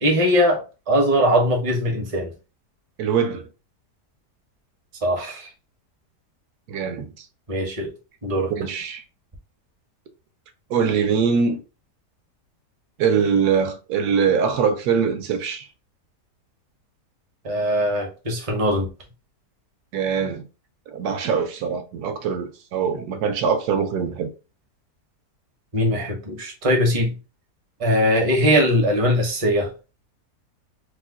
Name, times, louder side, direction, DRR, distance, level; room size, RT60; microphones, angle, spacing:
voice 1, 0.0-2.3 5.0-5.5 7.5-7.9 8.2-8.5 17.4-18.9 25.7-27.2 27.8-29.7, equal, 30° right, 0.6 m, -21 dB
voice 2, 3.0-3.5 6.7-7.3 8.5-9.0 10.7-11.6 13.0-15.7 19.9-20.4 20.9-24.3, right 6 dB, 70° right, 1.1 m, -23 dB
3.0 x 2.1 x 3.5 m
omnidirectional pair, 1.8 m